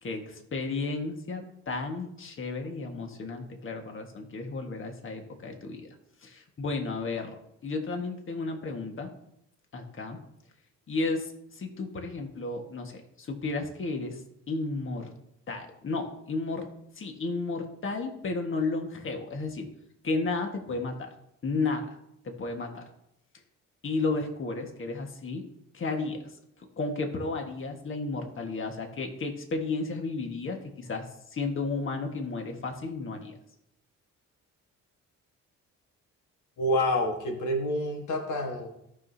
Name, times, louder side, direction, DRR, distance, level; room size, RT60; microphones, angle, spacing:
voice 1, 0.0-5.9 6.2-9.1 9.7-10.2 10.9-14.2 14.5-15.1 15.5-16.7 16.9-19.7 20.0-21.1 21.4-21.9 22.2-22.9 23.8-25.4 25.7-33.4, left 3 dB, 45° left, 4 dB, 1.6 m, -33 dB
voice 2, 36.6-38.7, left 1 dB, 75° left, 3 dB, 1.5 m, -28 dB
17.0 x 6.1 x 2.8 m, 0.80 s
cardioid pair, 90°, 30 cm